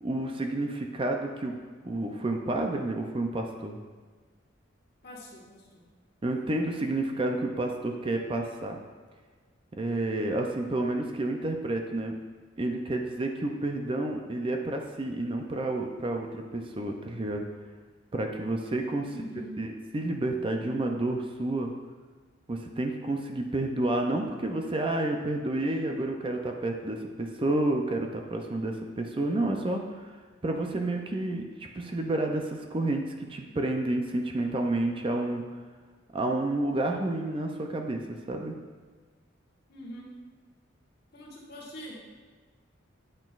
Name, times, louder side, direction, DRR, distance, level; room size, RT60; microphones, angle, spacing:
voice 1, 0.0-1.5 1.8-3.8 6.2-8.8 9.8-12.2 12.6-17.4 18.1-19.1 19.6-21.7 22.5-30.1 30.4-35.5 36.1-38.0 38.3-38.6, right 2 dB, 25° right, 3 dB, 0.4 m, -30 dB
voice 2, 5.0-5.8 19.0-19.5 39.7-40.1 41.1-42.1, equal, 55° left, -4 dB, 1.4 m, -44 dB
8.8 x 5.9 x 2.4 m, 1.5 s
head